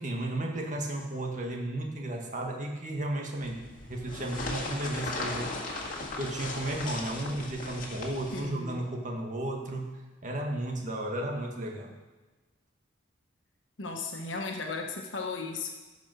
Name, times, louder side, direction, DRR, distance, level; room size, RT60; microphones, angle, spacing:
voice 1, 0.0-3.6 3.9-5.5 6.2-12.0, right 1 dB, 40° right, 1 dB, 1.7 m, -34 dB
sound 1, 3.4-8.5, left 2 dB, 45° left, 1.9 m, -37 dB
voice 2, 8.3-8.9 13.8-15.7, left 3 dB, 80° left, 2 dB, 1.2 m, -36 dB
14.5 x 5.3 x 6.4 m, 1.2 s
head